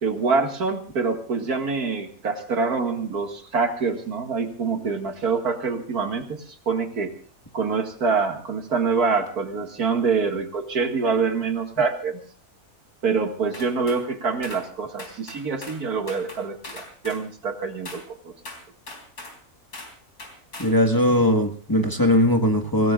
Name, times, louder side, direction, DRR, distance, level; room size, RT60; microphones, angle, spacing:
voice 1, 0.0-7.1 7.5-12.2 13.0-18.3, right 4 dB, 80° right, 4 dB, 2.5 m, -25 dB
sound 1, 13.5-14.0 14.4-14.7 15.0-15.8 16.1-17.2 17.8-18.1 18.4-19.4 19.7-19.9 20.2-20.8, left 2 dB, 85° left, 4.2 m, -40 dB
voice 2, 20.6-22.9, left 1 dB, 15° left, 3 dB, 1.4 m, -19 dB
27.0 x 17.0 x 2.4 m, 0.40 s
omnidirectional pair, 1.6 m